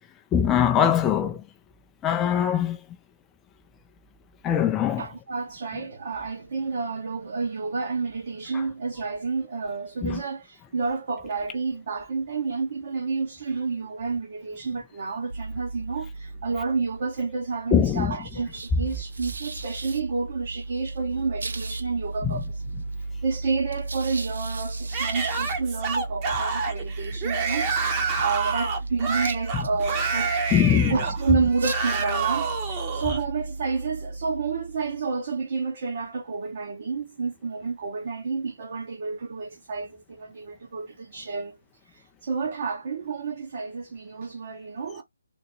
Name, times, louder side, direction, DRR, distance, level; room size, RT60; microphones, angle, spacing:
voice 1, 0.3-1.4 2.0-2.8 4.4-5.1 10.0-10.2 17.7-18.1 22.2-22.4 30.5-31.0, left 9 dB, 10° left, 0.4 m, -22 dB
voice 2, 5.0-22.6 23.2-30.4 30.9-41.6 41.8-45.0, right 4 dB, 45° right, 1.0 m, -30 dB
sound 1, 15.3-35.2, right 2 dB, 70° right, 0.7 m, -35 dB
Yell / Screaming, 24.9-33.2, right 5 dB, 25° right, 0.9 m, -28 dB
3.9 x 2.1 x 3.7 m
figure-of-eight pair, 155°, 0 cm